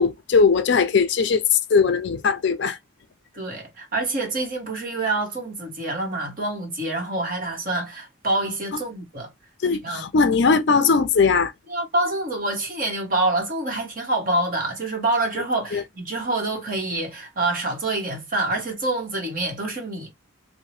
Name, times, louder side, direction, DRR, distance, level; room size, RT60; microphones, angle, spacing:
voice 1, 0.0-2.8 9.6-11.5 15.7-15.8, left 5 dB, 55° left, 0.4 m, -19 dB
voice 2, 3.3-9.3 9.8-10.0 11.7-20.1, right 2 dB, 40° right, 1.1 m, -26 dB
2.7 x 2.1 x 3.1 m
head